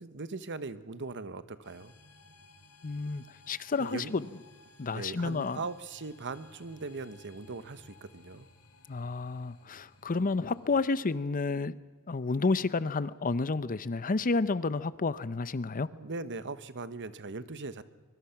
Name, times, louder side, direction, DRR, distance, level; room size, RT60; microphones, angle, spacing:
voice 1, 0.0-1.9 3.8-4.1 4.9-8.5 15.9-17.8, right 3 dB, 55° right, 13 dB, 1.1 m, -40 dB
sound 1, 1.6-10.9, left 3 dB, 75° left, 3.1 m, -58 dB
voice 2, 2.8-4.2 4.8-5.6 8.9-11.7 12.1-15.9, left 3 dB, 40° left, 16 dB, 0.6 m, -30 dB
25.0 x 23.0 x 5.9 m, 1.4 s
head